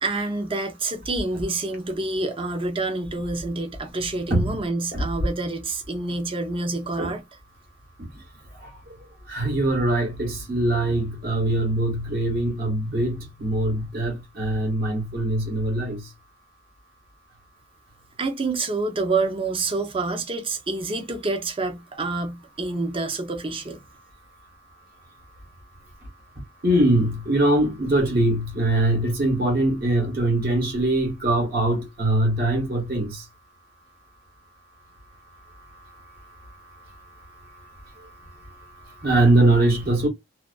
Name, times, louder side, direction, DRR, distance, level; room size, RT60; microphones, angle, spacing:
voice 1, 0.0-7.4 18.2-23.8, right 3 dB, 30° right, 0.6 m, -27 dB
voice 2, 9.3-16.0 26.6-33.2 39.0-40.1, right 1 dB, 55° right, 1.1 m, -22 dB
2.4 x 2.2 x 2.3 m
head